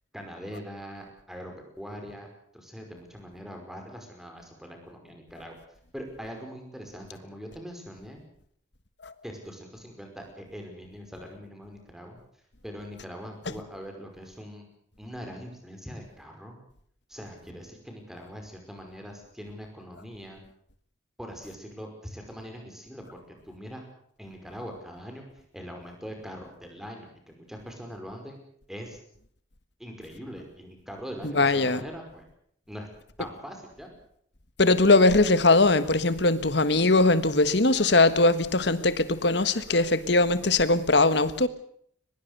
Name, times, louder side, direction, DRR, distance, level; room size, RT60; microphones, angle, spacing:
voice 1, 0.1-2.3 2.5-5.6 5.9-8.2 9.2-12.2 12.6-14.7 15.0-16.6 17.1-20.4 21.2-23.8 24.2-28.4 28.7-29.0 29.8-32.2 32.7-32.9 33.2-33.9, equal, ahead, 5.3 m, -42 dB
voice 2, 31.2-31.8 34.6-41.5, left 2 dB, 60° left, 1.5 m, -21 dB
23.0 x 21.0 x 6.8 m
head